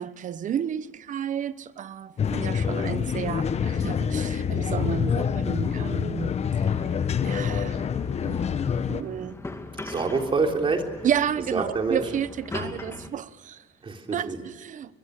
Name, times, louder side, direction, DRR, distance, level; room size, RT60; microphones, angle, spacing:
voice 1, 0.0-6.7 7.2-7.8 8.2-8.5 8.9-9.4 11.0-13.6 14.1-14.9, right 9 dB, 50° right, 1.0 m, -31 dB
sound 1, 2.2-9.0, left 7 dB, 40° left, 1.2 m, -26 dB
sound 2, 6.7-13.1, left 2 dB, 15° left, 2.3 m, -40 dB
voice 2, 9.8-10.8 11.5-12.0 13.8-14.4, right 4 dB, 30° right, 3.6 m, -26 dB
23.5 x 21.5 x 6.7 m
cardioid pair, 110°, 17 cm